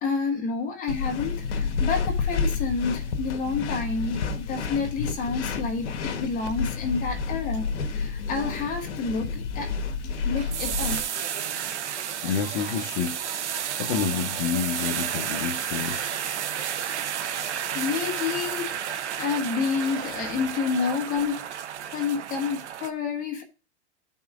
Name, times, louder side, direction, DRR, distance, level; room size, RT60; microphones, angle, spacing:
voice 1, 0.0-9.7 10.2-11.0 17.7-18.7 19.2-21.4 21.9-23.4, left 5 dB, 25° left, 1.4 m, -29 dB
sound 1, 0.9-11.0, left 5 dB, 80° left, 1.2 m, -30 dB
sound 2, 10.3-21.0, right 5 dB, 50° right, 2.1 m, -43 dB
sound 3, 10.5-22.9, right 9 dB, 90° right, 0.9 m, -32 dB
voice 2, 12.2-13.4 13.8-16.1 20.3-20.5, left 7 dB, 40° left, 1.0 m, -29 dB
13.5 x 5.6 x 2.5 m
hypercardioid pair, 145°, 34 cm